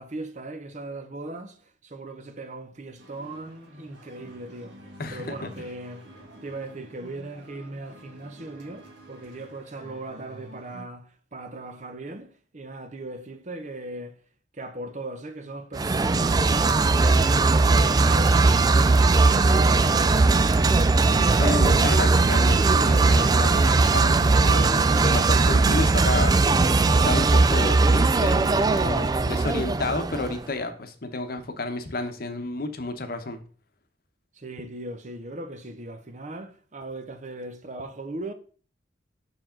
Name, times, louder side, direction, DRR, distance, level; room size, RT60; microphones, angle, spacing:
voice 1, 0.0-4.8 5.1-6.1 6.4-14.2 14.5-18.5 18.7-20.6 34.3-38.3, right 2 dB, 40° right, 0.8 m, -38 dB
sound 1, 3.0-10.8, equal, 75° right, 2.3 m, -48 dB
voice 2, 5.0-5.5 21.4-24.8 25.0-26.4 26.9-33.4, left 2 dB, 50° left, 0.9 m, -31 dB
sound 2, 15.7-30.4, right 3 dB, 20° right, 0.3 m, -19 dB
7.0 x 6.1 x 3.8 m
head